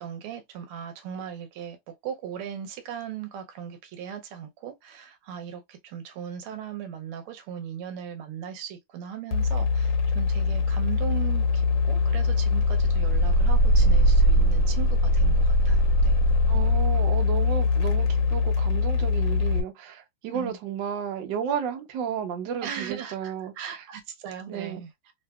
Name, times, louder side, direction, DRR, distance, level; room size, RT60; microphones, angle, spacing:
voice 1, 0.0-16.2 20.3-20.6 22.6-24.9, right 9 dB, 85° right, 1.6 m, -38 dB
sound 1, 9.3-19.6, left 2 dB, 70° left, 1.3 m, -21 dB
voice 2, 16.5-23.8 24.5-24.8, right 8 dB, 65° right, 1.3 m, -33 dB
3.7 x 2.8 x 2.2 m
omnidirectional pair, 2.3 m